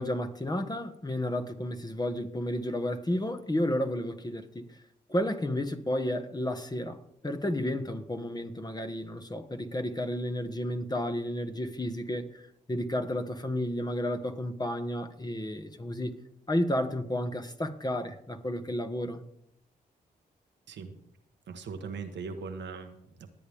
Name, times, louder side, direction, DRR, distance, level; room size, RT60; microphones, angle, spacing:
voice 1, 0.0-4.8 5.1-16.2 16.5-19.2, left 1 dB, 20° left, 1.6 m, -32 dB
voice 2, 20.7-21.0 21.5-23.3, right 5 dB, 75° right, 1.3 m, -40 dB
20.5 x 8.5 x 3.6 m
supercardioid pair, 45°, 19 cm